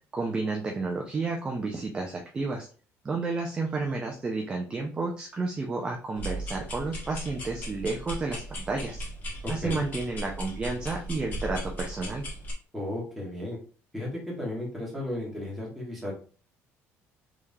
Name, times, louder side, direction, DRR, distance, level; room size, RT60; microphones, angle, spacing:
voice 1, 0.1-2.7 3.0-9.0 9.5-12.2, right 3 dB, 20° right, 1 dB, 0.5 m, -31 dB
sound 1, 6.1-12.5, equal, 35° left, 1.3 m, -37 dB
voice 2, 9.4-9.8 12.7-13.6 13.9-16.1, left 1 dB, 5° right, -5 dB, 1.6 m, -34 dB
3.6 x 3.3 x 2.7 m, 0.40 s
cardioid pair, 155°, 5 cm